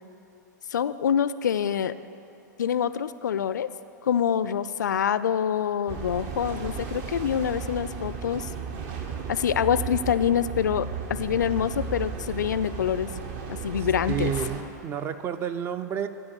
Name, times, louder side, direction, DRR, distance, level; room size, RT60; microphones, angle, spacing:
voice 1, 0.7-2.0 2.6-3.7 4.0-8.5 9.3-13.1 13.5-14.3, left 8 dB, 70° left, 15 dB, 0.4 m, -26 dB
sound 1, 5.9-14.6, right 6 dB, 45° right, 0.9 m, -34 dB
voice 2, 13.8-16.1, right 8 dB, 25° right, 12 dB, 0.4 m, -31 dB
12.5 x 5.1 x 7.1 m, 2.8 s
figure-of-eight pair, 105°, 10 cm